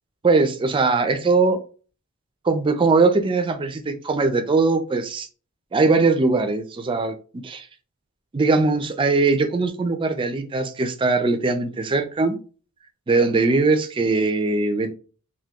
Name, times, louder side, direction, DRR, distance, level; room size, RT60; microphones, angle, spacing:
voice 1, 0.2-1.6 2.4-5.3 5.7-7.7 8.3-12.4 13.1-14.9, right 3 dB, 25° right, 0.3 m, -20 dB
2.9 x 2.2 x 3.4 m
head